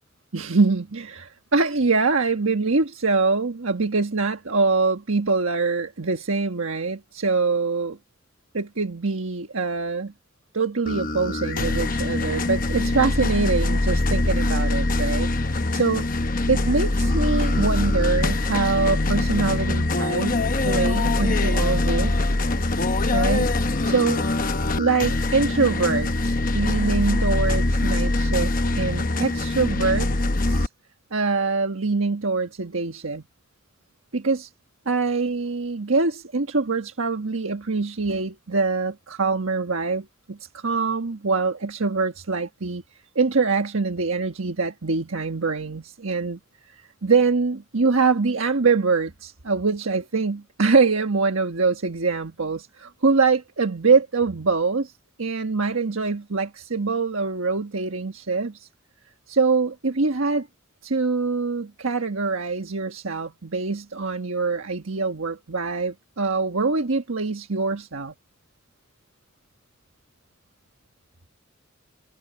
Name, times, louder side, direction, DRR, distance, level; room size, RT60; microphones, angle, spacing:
voice 1, 0.3-8.0 8.5-10.1 10.5-16.1 16.5-22.3 23.1-24.2 24.8-30.1 30.5-30.7 31.1-33.2 34.1-34.5 34.9-42.8 43.1-46.4 47.0-54.9 55.2-58.7 59.3-60.5 60.8-68.1, right 4 dB, 80° right, 1.4 m, -24 dB
sound 1, 10.9-30.7, left 2 dB, 40° left, 1.0 m, -23 dB
head